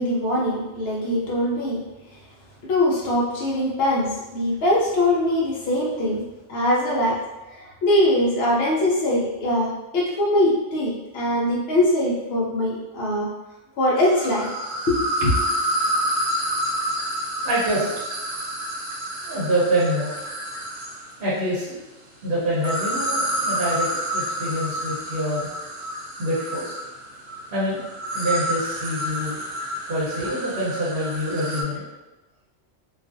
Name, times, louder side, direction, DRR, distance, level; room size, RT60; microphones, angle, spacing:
voice 1, 0.0-1.8 2.6-7.2 7.5-13.3 13.8-14.5 14.9-15.6, left 1 dB, 60° left, -4 dB, 0.6 m, -22 dB
sound 1, 14.0-21.1 22.5-31.6, right 1 dB, 80° right, 0.9 m, -28 dB
voice 2, 17.4-17.9 19.2-20.1 21.2-21.8 22.2-23.9 24.1-25.5 26.2-26.7 27.5-27.8 28.1-29.4 29.9-31.8, equal, 55° right, -7 dB, 0.8 m, -25 dB
2.3 x 2.3 x 2.5 m, 1.1 s
omnidirectional pair, 1.3 m